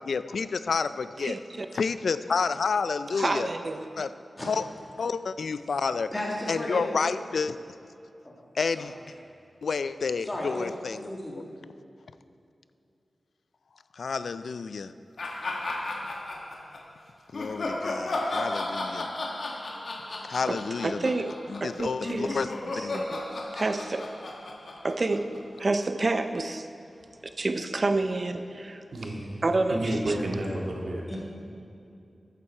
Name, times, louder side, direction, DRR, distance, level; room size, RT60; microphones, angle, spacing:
voice 1, 0.0-1.4 1.7-3.5 4.0-4.1 4.5-4.6 5.0-6.1 6.5-7.6 8.6-8.9 9.6-11.1 14.0-14.9 17.3-19.1 20.2-21.0 21.5-23.0, left 5 dB, 85° left, 13 dB, 0.4 m, -29 dB
voice 2, 1.2-1.7 3.2-3.9 20.5-20.6 20.8-21.3 21.6-22.5 22.7-24.1 24.8-26.7 27.4-28.8 29.4-30.2, right 2 dB, 40° right, 8 dB, 0.6 m, -29 dB
voice 3, 6.1-6.9 8.2-8.3 8.7-8.9 10.2-10.7 11.0-11.4 31.1-31.2, left 1 dB, 20° left, -3 dB, 2.0 m, -34 dB
sound 1, 15.2-16.8 17.3-25.6, left 2 dB, 65° left, 1.3 m, -34 dB
voice 4, 28.9-29.4 29.7-31.2, right 1 dB, 65° right, -1 dB, 2.0 m, -31 dB
14.0 x 9.1 x 4.4 m, 2.6 s
wide cardioid pair, 125°, 0 cm